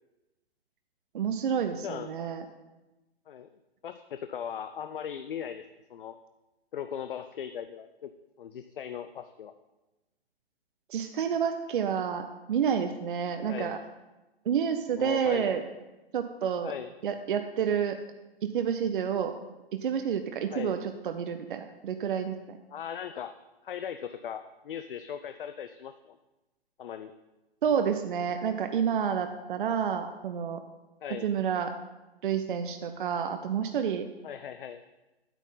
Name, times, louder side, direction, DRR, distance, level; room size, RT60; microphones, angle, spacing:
voice 1, 1.1-2.4 10.9-13.8 14.5-15.6 16.1-16.7 17.0-18.0 18.4-19.3 19.7-20.8 21.0-22.6 27.6-30.6 31.2-31.7 32.2-34.1, right 7 dB, 55° right, 7 dB, 0.7 m, -29 dB
voice 2, 1.8-2.1 3.3-3.5 3.8-6.2 6.7-8.1 8.4-9.5 13.5-13.7 14.9-15.5 16.6-16.9 20.5-20.7 22.7-23.3 23.6-26.2 26.8-27.1 31.0-31.3 34.2-34.8, left 8 dB, 55° left, 9 dB, 0.5 m, -38 dB
9.1 x 9.1 x 3.9 m, 1.1 s
figure-of-eight pair, 120°, 32 cm